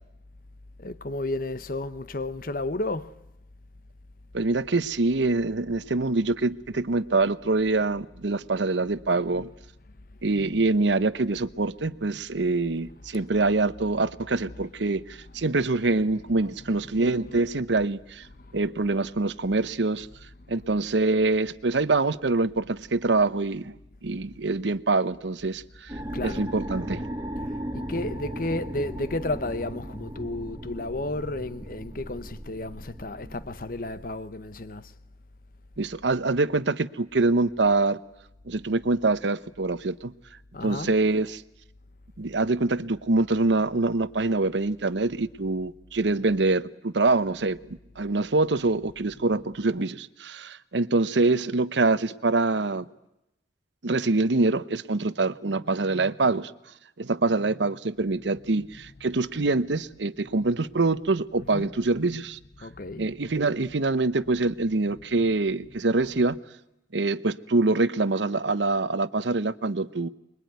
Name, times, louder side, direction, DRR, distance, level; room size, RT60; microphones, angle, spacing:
voice 1, 0.8-3.2 16.9-17.4 18.4-18.6 26.1-26.5 27.4-34.9 40.5-40.9 61.4-61.8 62.6-63.1, left 2 dB, 50° left, 1.0 m, -33 dB
voice 2, 4.3-9.5 10.2-18.3 18.5-20.1 20.5-23.7 24.0-27.0 35.8-38.0 38.5-40.1 40.6-41.4 42.2-52.9 53.8-56.5 57.0-62.4 63.0-66.4 66.9-70.1, right 3 dB, 80° right, 0.9 m, -25 dB
sound 1, 25.9-34.2, right 1 dB, 20° right, 2.3 m, -37 dB
25.0 x 22.0 x 9.4 m
head